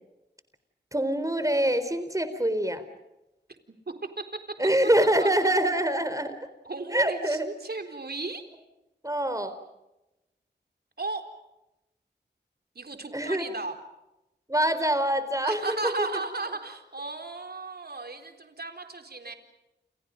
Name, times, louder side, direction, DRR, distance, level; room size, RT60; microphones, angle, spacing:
voice 1, 0.9-2.8 4.6-6.4 6.9-7.5 9.0-9.6 13.1-13.4 14.5-16.1, right 1 dB, 20° right, 11 dB, 4.1 m, -25 dB
voice 2, 3.9-4.2 5.0-5.3 6.6-8.4 11.0-11.2 12.8-13.8 15.4-19.3, right 3 dB, 60° right, 5 dB, 4.0 m, -35 dB
30.0 x 29.0 x 5.3 m, 0.95 s
wide cardioid pair, 50°, 18 cm